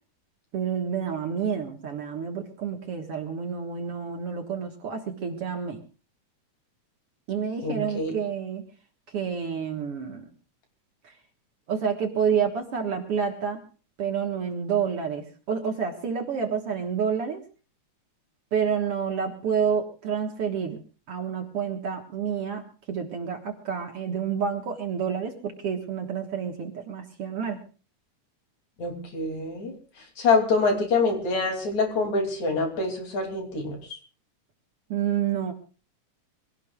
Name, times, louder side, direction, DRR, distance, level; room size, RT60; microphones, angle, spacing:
voice 1, 0.5-5.8 7.3-8.6 9.1-10.3 11.0-11.1 11.7-13.6 14.0-17.4 18.5-20.8 21.1-27.6 34.9-35.5, right 7 dB, 55° right, 4 dB, 2.2 m, -29 dB
voice 2, 7.6-8.1 28.8-29.7 30.2-33.8, left 3 dB, 60° left, 3 dB, 4.1 m, -25 dB
25.0 x 17.5 x 2.4 m, 0.36 s
omnidirectional pair, 3.6 m